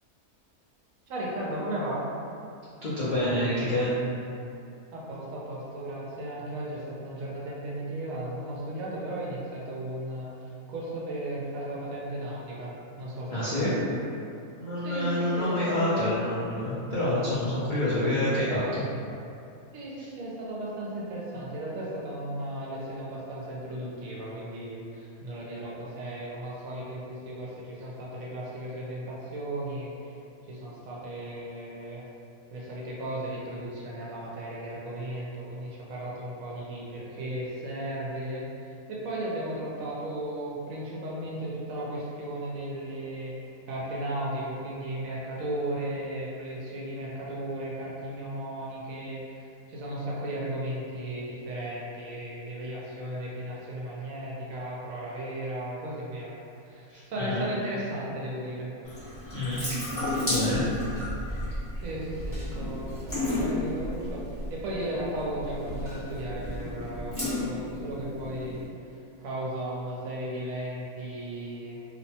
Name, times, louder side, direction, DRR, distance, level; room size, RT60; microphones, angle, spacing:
voice 1, 1.1-2.0 4.9-12.7 13.0-13.8 14.8-16.2 19.7-30.1 30.5-32.0 32.5-38.4 38.9-43.3 43.7-56.3 56.6-58.7 59.3-59.4 61.8-71.8, right 1 dB, 70° right, -5 dB, 1.0 m, -35 dB
voice 2, 2.8-3.9 13.3-13.8 14.6-18.8 56.9-57.4 59.3-59.6 60.3-60.6, left 1 dB, 70° left, -11 dB, 0.4 m, -27 dB
Water tap faucet / Sink (filling or washing) / Drip, 58.8-68.6, left 1 dB, 10° left, 1.0 m, -33 dB
2.8 x 2.1 x 2.7 m, 2.6 s
omnidirectional pair, 1.6 m